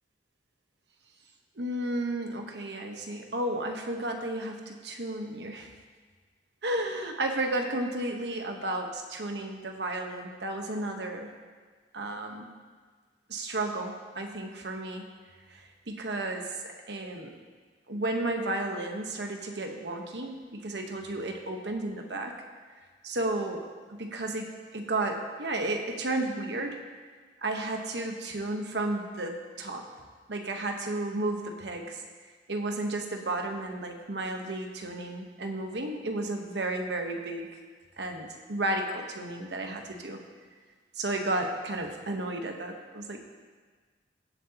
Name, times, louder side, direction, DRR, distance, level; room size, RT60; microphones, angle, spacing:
voice 1, 1.6-5.7 6.6-11.3 11.9-12.5 13.3-15.1 15.5-17.4 17.9-22.3 23.0-26.8 27.4-29.8 30.3-32.0 32.5-37.5 38.0-40.2 41.0-43.2, right 2 dB, 75° right, 3 dB, 1.1 m, -33 dB
17.5 x 7.7 x 2.9 m, 1.5 s
head